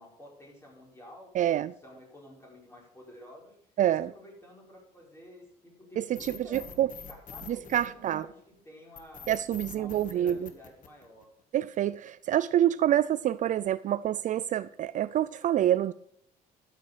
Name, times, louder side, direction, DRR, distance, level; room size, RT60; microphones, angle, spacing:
voice 1, 0.0-3.6 3.9-9.3 9.7-11.3, left 1 dB, 15° left, 5.0 m, -51 dB
voice 2, 1.3-1.7 3.8-4.1 6.0-6.2 6.5-6.9 7.5-8.3 9.3-10.5 11.5-15.9, right 11 dB, 50° right, 0.4 m, -27 dB
sound 1, 6.1-8.4 8.9-11.4, left 8 dB, 50° left, 1.5 m, -45 dB
12.0 x 8.2 x 5.0 m
cardioid pair, 110°, 17 cm